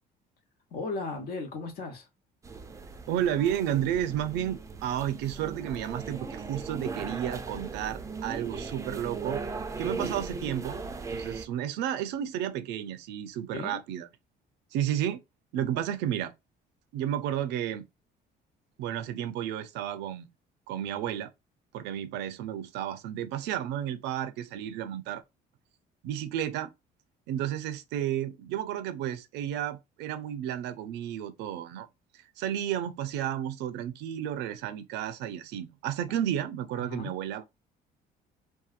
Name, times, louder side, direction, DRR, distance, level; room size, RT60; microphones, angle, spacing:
voice 1, 0.7-2.1 13.5-13.8 36.7-37.2, left 3 dB, 65° left, 0.9 m, -36 dB
sound 1, 2.4-11.5, right 4 dB, 20° right, 0.4 m, -38 dB
voice 2, 3.1-9.4 9.8-10.8 11.1-14.1 14.7-15.2 15.5-16.3 16.9-17.8 18.8-20.3 20.7-21.3 21.7-25.2 26.0-26.7 27.3-31.9 32.4-37.4, right 10 dB, 85° right, 0.4 m, -32 dB
2.7 x 2.2 x 2.4 m
cardioid pair, 110°, 17 cm